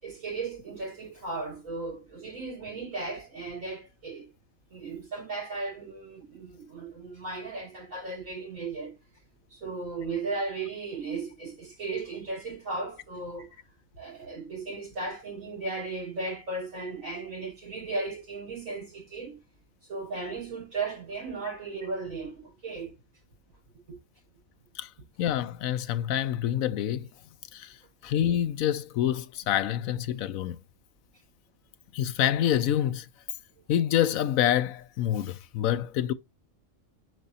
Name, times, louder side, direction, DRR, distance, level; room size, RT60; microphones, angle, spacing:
voice 1, 0.0-4.3 4.7-9.0 9.5-13.5 14.0-19.4 19.9-22.9 23.9-24.0, right 3 dB, 80° right, 6.0 m, -36 dB
voice 2, 25.2-27.1 27.5-27.8 28.0-30.6 31.9-33.1 33.7-36.1, left 11 dB, 90° left, 1.1 m, -27 dB
9.4 x 5.1 x 2.9 m
omnidirectional pair, 1.4 m